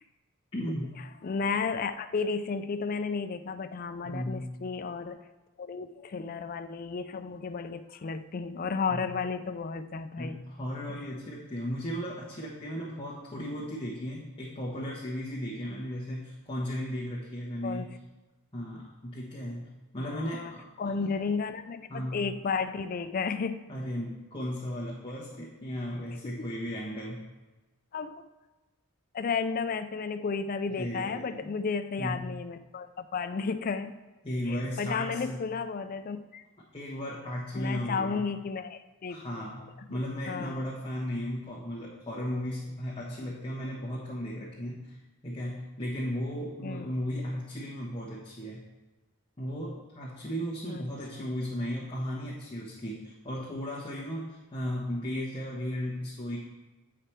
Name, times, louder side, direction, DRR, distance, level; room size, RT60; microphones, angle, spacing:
voice 1, 0.5-1.0 4.0-4.5 8.9-9.1 10.2-17.9 18.5-19.7 19.9-20.6 21.9-22.2 23.7-27.2 30.7-31.5 32.0-32.2 34.2-35.4 36.7-38.3 39.1-45.0 45.2-48.6 49.4-56.4, equal, 25° left, -6 dB, 1.1 m, -35 dB
voice 2, 1.2-5.2 5.6-10.4 11.0-11.1 17.6-17.9 20.0-23.7 26.2-26.5 27.9-28.2 29.1-33.9 34.5-36.4 37.6-39.4 40.3-40.6 46.6-46.9 50.7-50.8, left 5 dB, 40° left, 9 dB, 0.3 m, -33 dB
8.6 x 5.0 x 4.4 m, 1.1 s
head